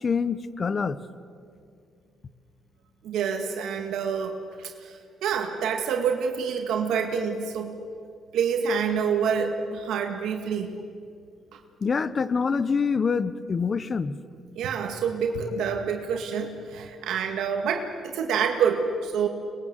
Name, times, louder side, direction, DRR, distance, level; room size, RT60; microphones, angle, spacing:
voice 1, 0.0-1.0 11.8-14.2, left 5 dB, 40° left, 15 dB, 1.0 m, -25 dB
voice 2, 3.0-7.8 8.3-10.7 11.5-11.6 14.6-19.3, right 6 dB, 80° right, 4 dB, 1.9 m, -27 dB
25.5 x 21.0 x 7.9 m, 2.3 s
cardioid pair, 90°, 0 cm